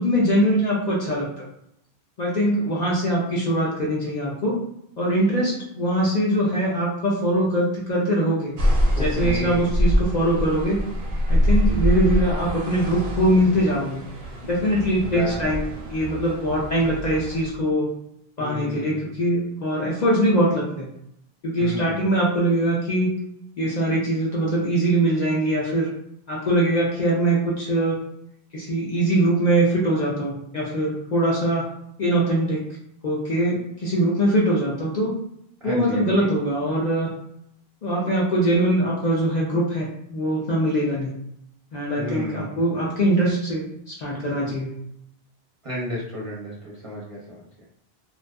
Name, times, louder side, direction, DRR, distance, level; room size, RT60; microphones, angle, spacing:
voice 1, 0.0-1.5 2.2-4.6 5.0-8.5 9.0-10.8 11.3-14.0 14.4-15.6 15.9-17.9 18.4-20.9 21.4-23.1 23.6-25.9 26.3-28.0 28.5-31.7 32.0-32.6 33.0-35.1 35.6-37.1 37.8-41.1 41.7-44.7, right 1 dB, 55° left, -4 dB, 0.5 m, -22 dB
sound 1, 8.6-17.5, equal, 80° right, 0.8 m, -25 dB
voice 2, 8.9-9.6 15.0-15.8 18.4-19.1 21.6-22.1 35.6-36.3 41.9-42.5 45.6-47.6, left 1 dB, 40° right, -6 dB, 0.6 m, -33 dB
2.5 x 2.3 x 2.2 m, 0.74 s
omnidirectional pair, 1.0 m